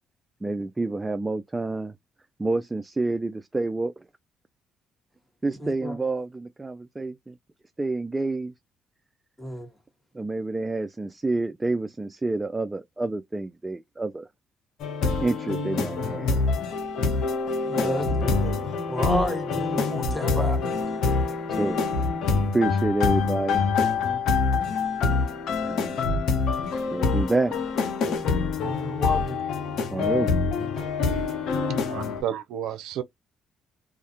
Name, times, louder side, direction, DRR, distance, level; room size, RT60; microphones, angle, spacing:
voice 1, 0.4-1.9 2.4-4.0 5.4-7.3 7.8-8.5 10.1-14.3 15.2-16.4 17.8-18.0 21.5-21.9 22.5-23.6 25.6-26.0 26.9-27.6 29.9-30.3, right 2 dB, 20° right, 0.3 m, -28 dB
voice 2, 5.5-6.0 9.4-9.7 17.6-18.6 18.9-20.6 28.6-29.4, left 1 dB, 5° left, 1.3 m, -32 dB
sound 1, 14.8-32.2, left 4 dB, 70° left, 0.7 m, -25 dB
voice 3, 31.7-33.0, right 10 dB, 75° right, 0.5 m, -32 dB
2.3 x 2.1 x 2.7 m
supercardioid pair, 65°, 0 cm